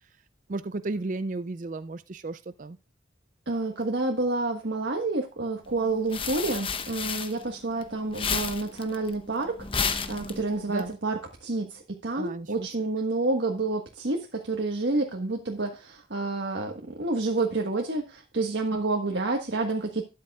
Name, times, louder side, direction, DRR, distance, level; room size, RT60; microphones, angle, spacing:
voice 1, 0.5-2.8 10.7-11.0 12.1-12.7, right 2 dB, 45° right, 12 dB, 0.4 m, -34 dB
voice 2, 3.5-20.0, right 2 dB, 80° right, 2 dB, 1.4 m, -29 dB
sound 1, 5.7-7.8 8.1-10.8, left 5 dB, 30° left, 0.9 m, -31 dB
12.5 x 10.5 x 2.4 m, 0.30 s
head